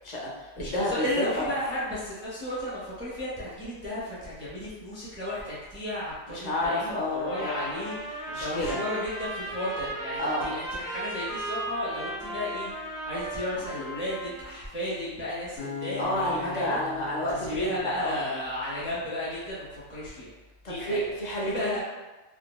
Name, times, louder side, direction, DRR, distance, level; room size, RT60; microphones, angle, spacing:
voice 1, 0.0-1.5 6.3-7.6 8.3-8.8 10.2-10.5 16.0-18.2 20.6-21.8, left 1 dB, 45° left, -5 dB, 0.6 m, -30 dB
voice 2, 0.6-16.8 17.3-20.3 20.7-21.1 21.4-21.8, left 1 dB, 15° right, -8 dB, 0.4 m, -34 dB
Trumpet, 7.2-14.6, right 2 dB, 55° right, 1.1 m, -36 dB
Acoustic guitar, 15.6-18.8, left 5 dB, 75° left, 1.6 m, -41 dB
3.4 x 2.0 x 2.2 m, 1.2 s
omnidirectional pair, 1.2 m